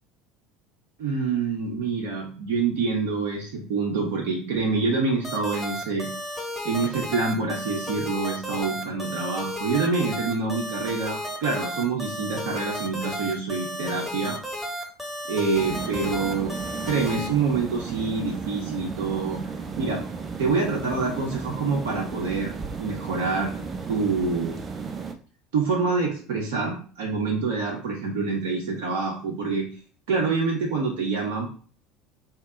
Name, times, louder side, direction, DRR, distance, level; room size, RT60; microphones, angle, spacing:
voice 1, 1.0-6.1 6.6-14.4 15.3-16.5 16.8-19.4 19.8-20.0 20.4-22.5 22.8-23.5 23.9-24.6 25.5-29.7 30.1-31.5, right 4 dB, 65° right, -2 dB, 0.7 m, -26 dB
sound 1, 5.2-17.3, equal, 10° left, 1.1 m, -33 dB
sound 2, 15.5-25.1, right 5 dB, 30° right, 0.4 m, -34 dB
2.8 x 2.2 x 3.7 m, 0.42 s
figure-of-eight pair, 70°, 0 cm